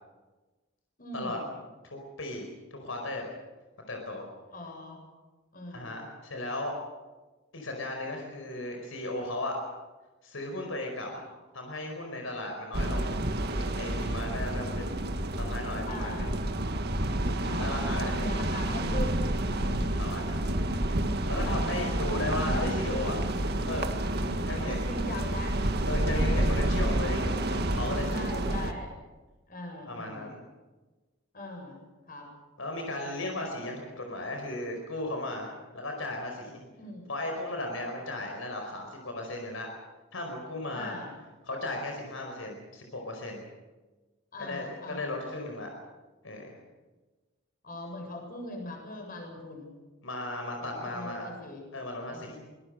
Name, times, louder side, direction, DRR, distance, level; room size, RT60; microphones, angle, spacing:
voice 1, 1.0-1.5 4.5-5.0 5.5-6.1 11.1-11.2 15.8-16.4 17.3-17.6 18.0-20.0 20.3-20.8 21.4-22.4 24.2-24.5 24.9-25.6 26.0-26.6 28.1-29.0 29.5-30.3 31.3-32.3 36.7-37.1 40.7-41.1 44.3-45.2 47.6-49.7 50.6-51.7 52.1-52.4, left 1 dB, 45° left, 2 dB, 7.7 m, -41 dB
voice 2, 1.8-3.3 3.9-4.2 5.7-6.7 7.5-9.6 10.2-11.1 11.5-13.1 13.5-14.9 15.4-16.3 17.6-18.3 20.0-20.4 21.2-23.2 23.7-24.0 24.4-24.9 25.9-28.5 29.9-30.3 32.6-36.6 37.1-39.7 40.1-41.0 41.4-43.5 44.4-45.7 46.2-46.6 50.0-51.3 51.7-52.4, left 2 dB, 80° left, 2 dB, 4.9 m, -36 dB
sound 1, 12.7-28.7, right 1 dB, 55° right, 1.8 m, -29 dB
25.0 x 20.5 x 6.7 m, 1.2 s
head